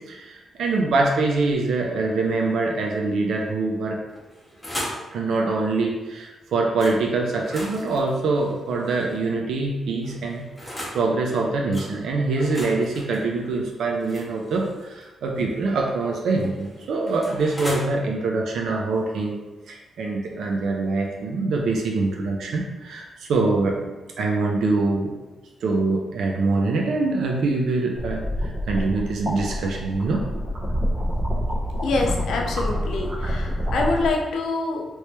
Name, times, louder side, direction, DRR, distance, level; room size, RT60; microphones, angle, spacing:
voice 1, 0.0-4.0 5.1-19.4 19.7-25.1 25.6-30.2, right 3 dB, 75° right, 0 dB, 0.4 m, -24 dB
sound 1, 4.1-5.1 6.8-7.0 7.3-9.2 10.0-11.0 11.7-11.9 12.3-15.0 16.2-17.8, equal, 5° left, 0.8 m, -37 dB
sound 2, 27.9-34.1, equal, 45° right, 0.9 m, -27 dB
voice 2, 31.8-34.9, left 3 dB, 90° left, 1 dB, 0.5 m, -25 dB
3.1 x 2.8 x 3.3 m, 1.1 s
wide cardioid pair, 170°, 0 cm